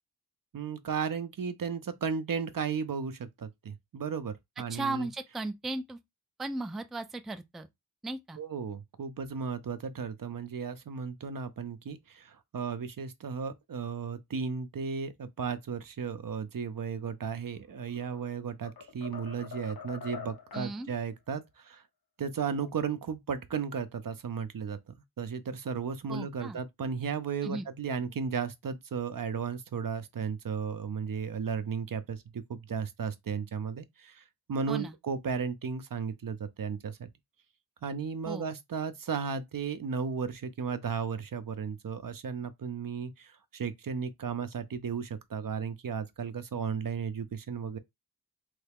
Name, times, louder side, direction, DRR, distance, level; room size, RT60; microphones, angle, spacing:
voice 1, 0.5-5.1 8.4-21.8 22.2-37.1 37.8-47.8, right 6 dB, 60° right, 0.5 m, -35 dB
voice 2, 4.7-6.0 6.4-7.7 8.0-8.4 20.5-20.9 26.1-26.6 27.4-27.7 34.7-34.9 38.3-38.5, right 2 dB, ahead, 0.3 m, -36 dB
sound 1, 17.8-18.3 18.6-20.7, left 6 dB, 65° left, 0.8 m, -44 dB
3.2 x 2.3 x 3.4 m
wide cardioid pair, 45°, 39 cm